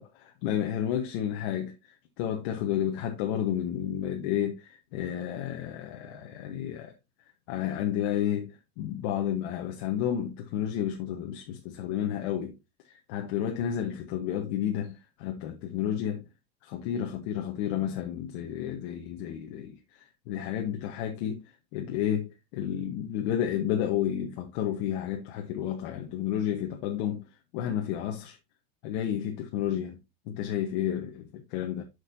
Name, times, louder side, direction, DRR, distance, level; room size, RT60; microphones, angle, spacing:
voice 1, 0.0-1.7 2.2-6.9 7.5-8.5 8.8-12.5 13.1-16.2 16.6-19.7 20.3-21.4 21.7-27.2 27.5-28.4 28.8-30.0 30.3-31.8, left 10 dB, 60° left, 1.2 m, -31 dB
8.0 x 6.6 x 2.7 m
supercardioid pair, 155°, 31 cm